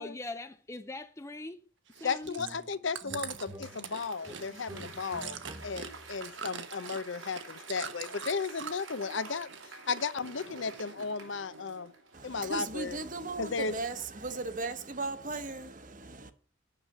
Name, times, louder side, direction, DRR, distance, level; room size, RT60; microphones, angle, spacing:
voice 1, 0.0-1.7 2.0-2.4, left 2 dB, 15° left, 0.4 m, -41 dB
Chewing mastication, 1.9-8.9 9.2-10.0 10.3-11.2 11.7-11.8, right 7 dB, 70° right, 1.1 m, -43 dB
voice 2, 2.0-9.5 9.9-11.9 12.2-13.0 13.4-13.7, left 4 dB, 70° left, 0.7 m, -35 dB
sound 1, 2.4-2.8 3.0-6.1, equal, 15° right, 0.8 m, -48 dB
Applause / Crowd, 3.1-12.5 12.9-13.0, right 3 dB, 90° right, 2.8 m, -48 dB
voice 3, 12.1-16.3, right 3 dB, 40° right, 1.1 m, -37 dB
9.6 x 6.6 x 7.3 m
head